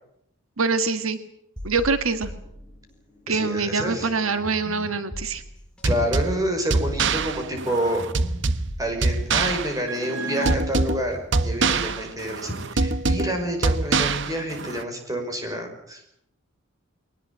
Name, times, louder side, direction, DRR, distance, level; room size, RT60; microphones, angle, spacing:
voice 1, 0.6-1.2 1.6-2.3 3.3-5.4, right 4 dB, 75° right, 10 dB, 1.6 m, -24 dB
sound 1, 1.6-3.3 3.6-12.2, equal, 5° left, 5.2 m, -41 dB
voice 2, 3.3-4.1 5.8-8.1 8.8-16.0, right 1 dB, 15° right, 4 dB, 5.5 m, -28 dB
sound 2, 5.8-14.8, right 3 dB, 60° right, 1.1 m, -25 dB
22.0 x 19.5 x 8.9 m, 0.75 s
head